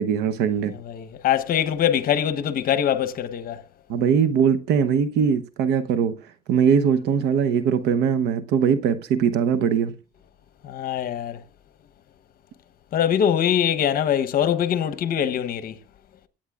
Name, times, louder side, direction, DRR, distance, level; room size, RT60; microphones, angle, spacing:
voice 1, 0.0-0.7 3.9-6.2 6.5-9.9, right 7 dB, 90° right, 0.9 m, -21 dB
voice 2, 0.8-3.6 10.6-11.4 12.9-15.8, left 9 dB, 60° left, 1.0 m, -23 dB
25.0 x 8.9 x 2.4 m
cardioid pair, 110°, 17 cm